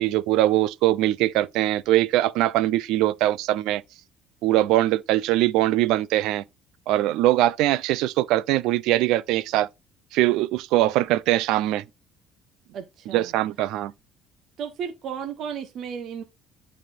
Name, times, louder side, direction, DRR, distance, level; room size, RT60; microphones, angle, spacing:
voice 1, 0.0-3.8 4.4-6.4 6.9-9.7 10.1-11.8 13.1-13.9, right 15 dB, 80° right, 0.6 m, -22 dB
voice 2, 12.7-13.3 14.6-16.2, right 7 dB, 55° right, 1.2 m, -34 dB
12.0 x 4.4 x 2.6 m
cardioid pair, 120°, 0 cm